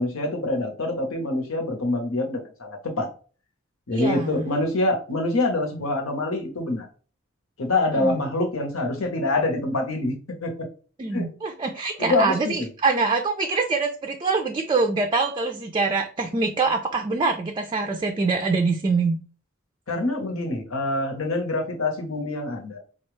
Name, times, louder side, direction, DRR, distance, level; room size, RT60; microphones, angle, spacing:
voice 1, 0.0-3.1 3.9-6.9 7.6-10.7 11.1-11.3 12.0-12.7 19.9-22.8, left 2 dB, 85° left, 3 dB, 1.0 m, -25 dB
voice 2, 3.9-4.4 7.9-8.2 11.0-19.2, right 4 dB, 25° right, 5 dB, 0.4 m, -24 dB
4.3 x 2.3 x 3.1 m, 0.38 s
head